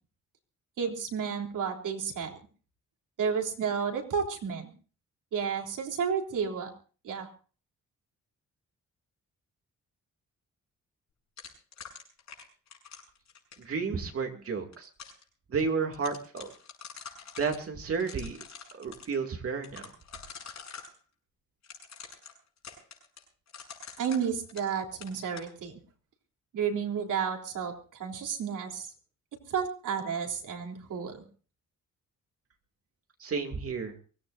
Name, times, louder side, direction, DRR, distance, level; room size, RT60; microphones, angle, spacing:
voice 1, 0.8-2.4 3.2-4.7 5.3-6.7 7.0-7.3 24.0-25.8 26.5-28.9 29.5-31.2, right 6 dB, 80° right, 1 dB, 3.6 m, -31 dB
sound 1, 11.4-13.7 14.5-15.2 15.6-15.7 15.9-17.6 17.9-19.1 19.6-20.9 21.6-24.8 25.0-25.5, left 6 dB, 60° left, 7.1 m, -46 dB
voice 2, 13.6-14.9 15.5-16.5 17.4-18.4 18.8-19.9 33.2-33.9, right 5 dB, 45° right, 4 dB, 2.6 m, -32 dB
23.5 x 17.5 x 2.6 m, 0.38 s
wide cardioid pair, 175°, 31 cm